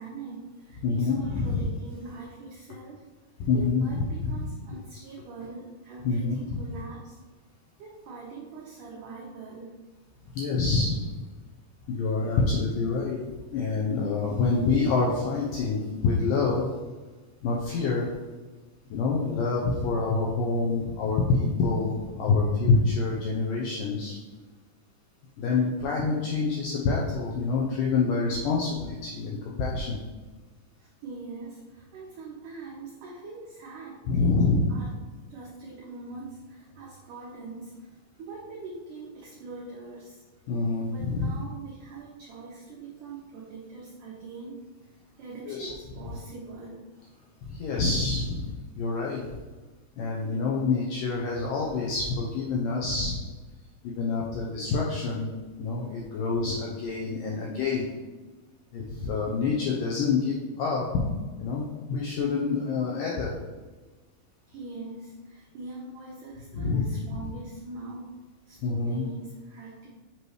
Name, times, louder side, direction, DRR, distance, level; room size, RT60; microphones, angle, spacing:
voice 1, 0.0-3.1 3.5-7.2 7.8-9.8 30.8-35.0 35.3-40.2 40.9-44.6 45.2-46.9 64.5-68.1 68.5-69.9, right 3 dB, 85° right, -3 dB, 1.8 m, -42 dB
voice 2, 0.8-1.6 3.4-4.4 6.0-6.4 10.3-11.1 11.9-16.7 17.4-18.1 18.9-24.2 25.4-30.0 34.1-34.6 40.5-41.3 45.5-45.7 47.4-49.4 50.0-53.2 53.8-55.3 55.6-57.9 58.7-61.1 61.4-63.3 66.5-67.2 68.6-69.1, left 4 dB, 80° left, -3 dB, 1.9 m, -27 dB
7.8 x 3.1 x 4.8 m, 1.3 s
omnidirectional pair, 4.9 m